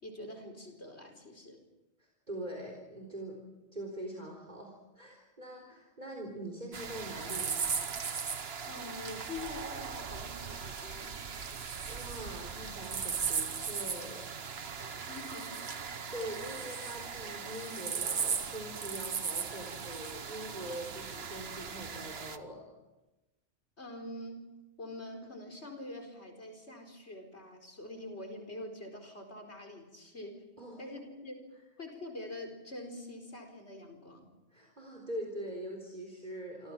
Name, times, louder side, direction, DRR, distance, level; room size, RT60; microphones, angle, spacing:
voice 1, 0.0-1.6 8.6-11.2 14.9-15.6 23.8-24.5 24.8-30.4 30.8-31.5 31.8-34.3, left 1 dB, 80° left, 3 dB, 4.9 m, -45 dB
voice 2, 2.0-3.4 3.7-7.8 11.9-14.3 16.1-22.7 30.6-30.8 34.5-36.7, right 1 dB, 45° right, 0 dB, 4.2 m, -43 dB
sound 1, 6.7-22.4, right 6 dB, 65° right, 1.4 m, -38 dB
29.0 x 24.0 x 6.2 m, 1.0 s
omnidirectional pair, 1.1 m